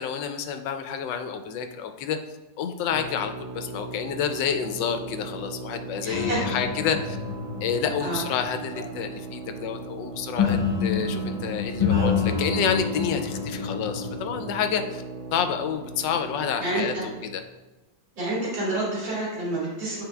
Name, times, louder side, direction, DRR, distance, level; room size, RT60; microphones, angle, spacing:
voice 1, 0.0-2.2 2.6-7.2 7.6-15.0 15.3-17.4, left 7 dB, 75° left, 6 dB, 1.2 m, -29 dB
sound 1, 2.9-17.4, right 4 dB, 85° right, 1.5 m, -39 dB
voice 2, 6.0-6.5 8.0-8.2 16.6-17.0 18.2-20.0, right 2 dB, 70° right, -8 dB, 2.9 m, -28 dB
sound 2, 6.1-9.1 10.4-14.5, left 5 dB, 25° left, 0.9 m, -28 dB
10.5 x 4.0 x 2.3 m, 1.2 s
omnidirectional pair, 2.1 m